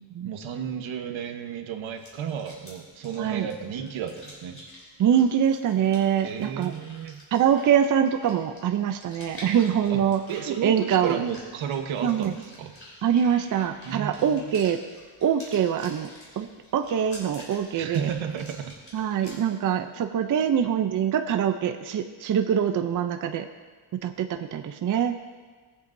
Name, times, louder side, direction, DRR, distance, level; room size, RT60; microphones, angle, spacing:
voice 1, 0.2-4.6 6.2-7.2 9.7-10.0 10.3-12.8 13.8-14.4 17.7-18.7, right 8 dB, 75° right, 5 dB, 1.2 m, -33 dB
sound 1, 1.8-19.4, left 1 dB, 25° left, 3.6 m, -48 dB
voice 2, 5.0-6.7 7.3-10.2 10.5-11.2 12.0-12.3 13.0-14.8 15.2-16.1 16.4-16.5 16.7-18.1 18.9-23.5 24.0-25.2, right 8 dB, 40° right, 6 dB, 0.5 m, -24 dB
20.5 x 8.1 x 2.6 m, 1.4 s
cardioid pair, 160°, 48 cm